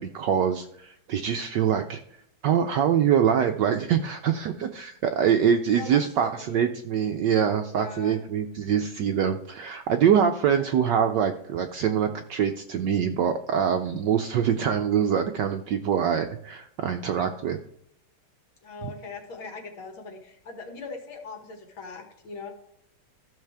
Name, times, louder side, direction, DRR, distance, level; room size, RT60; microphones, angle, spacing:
voice 1, 0.0-2.0 2.4-17.6, right 8 dB, 75° right, 6 dB, 1.0 m, -24 dB
voice 2, 5.7-6.7 7.7-8.2 10.5-10.7 11.9-12.1 18.6-22.5, left 4 dB, 65° left, 2 dB, 2.5 m, -40 dB
14.0 x 6.5 x 3.4 m, 0.72 s
omnidirectional pair, 2.4 m